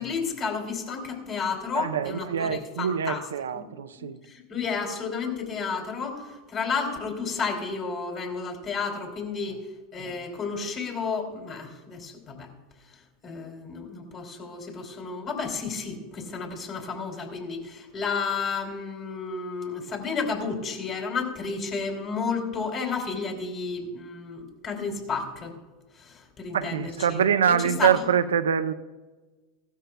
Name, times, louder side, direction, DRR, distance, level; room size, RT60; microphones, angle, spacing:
voice 1, 0.0-3.2 4.0-9.6 9.9-12.5 13.2-25.5 26.0-27.2 27.8-27.9, left 5 dB, 40° left, 3.1 m, -32 dB
voice 2, 1.7-4.2 9.5-9.6 26.5-28.7, right 8 dB, 85° right, 0.5 m, -25 dB
16.5 x 13.0 x 2.3 m
hypercardioid pair, 95°, 0 cm